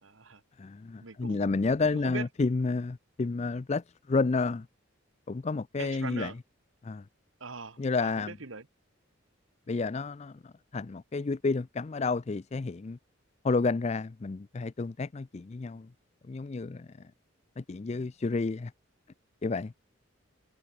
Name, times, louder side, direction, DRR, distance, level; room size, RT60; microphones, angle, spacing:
voice 1, 0.0-0.4 1.0-1.5 2.0-2.3 5.8-6.4 7.4-8.6, right 4 dB, 70° right, 1.6 m, -41 dB
voice 2, 0.6-4.7 5.3-6.3 6.8-7.0 7.8-8.4 9.7-13.0 13.4-15.9 16.3-16.9 17.6-18.7 19.4-19.7, left 3 dB, 30° left, 0.4 m, -30 dB
head